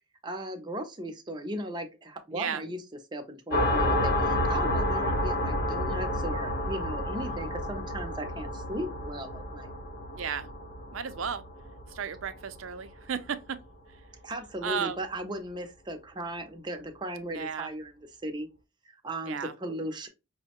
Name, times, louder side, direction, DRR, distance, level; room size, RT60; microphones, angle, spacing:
voice 1, 0.2-2.8 3.1-9.7 14.2-18.5 18.9-20.1, right 1 dB, 20° right, 0.6 m, -37 dB
voice 2, 2.3-2.6 7.2-7.5 10.1-10.5 10.9-11.4 11.9-13.6 14.6-15.0 17.3-17.7 19.3-19.5, right 7 dB, 75° right, 0.5 m, -34 dB
sound 1, 3.5-12.8, left 1 dB, 40° left, 0.9 m, -30 dB
5.5 x 2.1 x 2.9 m
head